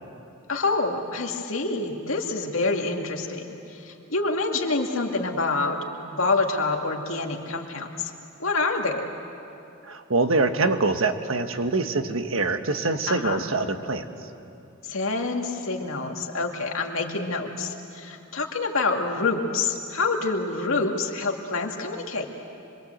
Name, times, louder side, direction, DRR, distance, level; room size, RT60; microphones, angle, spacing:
voice 1, 0.5-8.1 8.4-9.0 13.1-13.4 14.8-22.3, left 3 dB, 80° left, 2 dB, 2.3 m, -27 dB
voice 2, 9.8-14.1, right 3 dB, 80° right, 8 dB, 1.3 m, -24 dB
26.0 x 23.0 x 8.0 m, 2.7 s
head